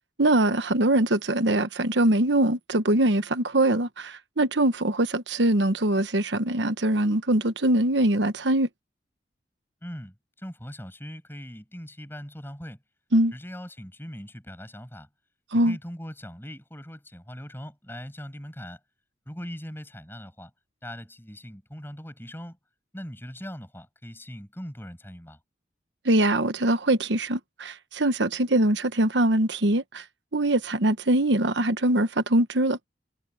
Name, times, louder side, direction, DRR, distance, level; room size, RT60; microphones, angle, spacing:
voice 1, 0.2-8.7 13.1-13.3 15.5-15.8 26.0-30.0 30.3-32.8, right 1 dB, 75° right, 1.2 m, -23 dB
voice 2, 9.8-12.8 13.3-15.1 15.5-18.8 19.3-20.5 20.8-22.6 22.9-25.4, equal, 10° left, 7.0 m, -40 dB
head